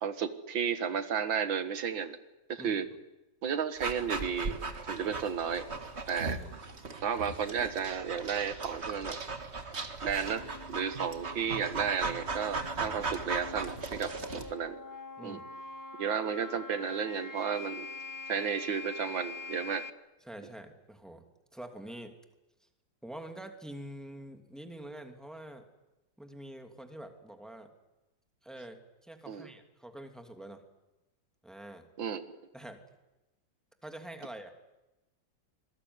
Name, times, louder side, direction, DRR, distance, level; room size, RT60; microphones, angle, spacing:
voice 1, 0.0-2.2 2.5-2.9 3.4-4.6 4.9-5.7 6.1-6.4 7.0-9.2 10.0-14.8 15.2-15.4 15.9-17.9 18.3-19.8 29.3-29.5 32.0-32.3, right 7 dB, 90° right, 11 dB, 2.2 m, -33 dB
voice 2, 2.6-2.9 6.3-6.5 12.8-13.2 15.2-15.5 20.2-21.2 21.5-22.1 23.0-25.6 26.2-27.7 28.4-30.6 31.4-31.9 32.5-32.8 33.8-34.5, right 1 dB, ahead, 5 dB, 2.6 m, -46 dB
Dog, 3.8-14.5, right 3 dB, 35° right, 2.1 m, -38 dB
sound 1, 10.3-19.9, left 3 dB, 15° left, 0.7 m, -45 dB
26.5 x 21.0 x 9.6 m, 1.0 s
omnidirectional pair, 2.0 m